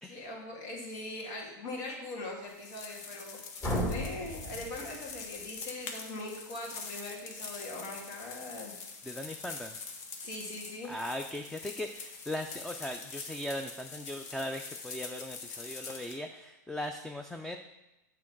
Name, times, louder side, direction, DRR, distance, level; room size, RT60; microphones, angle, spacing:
voice 1, 0.0-3.4 3.8-8.7 10.2-10.9, left 2 dB, 85° left, -2 dB, 2.3 m, -41 dB
sound 1, 2.5-16.2, left 4 dB, 65° left, 1.1 m, -45 dB
sound 2, 3.6-5.5, equal, 35° left, 2.1 m, -35 dB
voice 2, 9.0-9.8 10.8-17.6, left 1 dB, 5° left, 5 dB, 0.3 m, -39 dB
7.6 x 3.8 x 5.9 m, 0.96 s
supercardioid pair, 135°, 10 cm